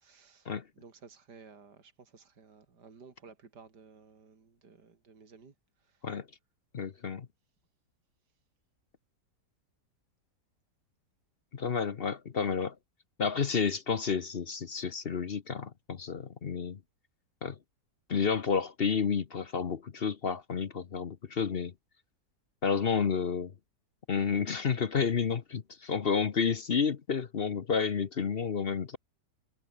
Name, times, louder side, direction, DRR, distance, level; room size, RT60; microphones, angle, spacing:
voice 1, 0.0-5.5 5.8-6.1, right 5 dB, 80° right, 3.3 m, -55 dB
voice 2, 6.7-7.3 11.5-12.7 13.2-16.8 17.4-17.6 18.1-21.7 22.6-23.5 24.1-29.0, left 6 dB, 45° left, 0.9 m, -30 dB
omnidirectional pair, 1.8 m